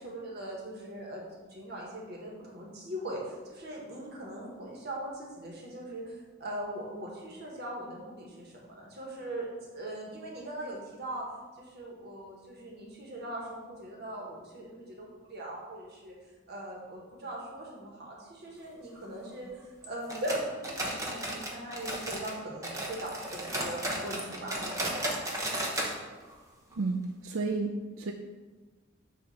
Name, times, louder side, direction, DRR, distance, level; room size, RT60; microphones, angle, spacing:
voice 1, 0.0-11.2 11.6-16.2 16.5-25.0, right 1 dB, 55° right, -2 dB, 1.4 m, -40 dB
sound 1, 20.1-22.4 22.6-26.0 26.2-26.3 26.7-26.8 27.4-27.5, right 1 dB, 15° right, 0.8 m, -34 dB
voice 2, 26.7-28.1, right 3 dB, 90° right, 3 dB, 0.4 m, -32 dB
6.3 x 2.8 x 5.6 m, 1.3 s
head